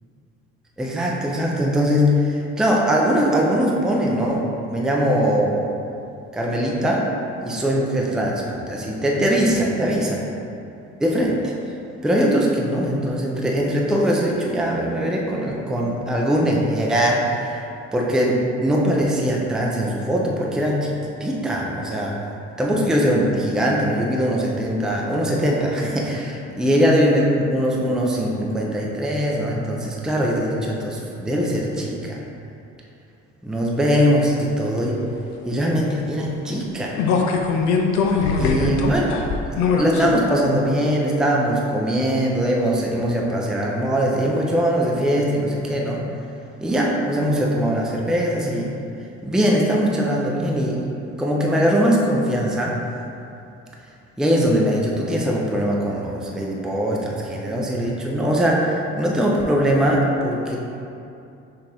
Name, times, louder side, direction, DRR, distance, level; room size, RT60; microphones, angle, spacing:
voice 1, 0.8-5.7 6.3-7.1 7.4-10.2 11.0-11.5 12.0-17.6 17.9-22.2 22.6-32.2 33.4-35.0 35.4-37.0 38.4-39.2 39.8-46.1 46.6-48.7 49.2-50.8 51.2-52.8 54.2-60.6, equal, ahead, -2 dB, 0.5 m, -21 dB
sound 1, 37.0-40.1 40.5-40.6, left 4 dB, 80° left, 0.5 m, -21 dB
5.7 x 2.6 x 3.4 m, 2.7 s
cardioid pair, 95°, 30 cm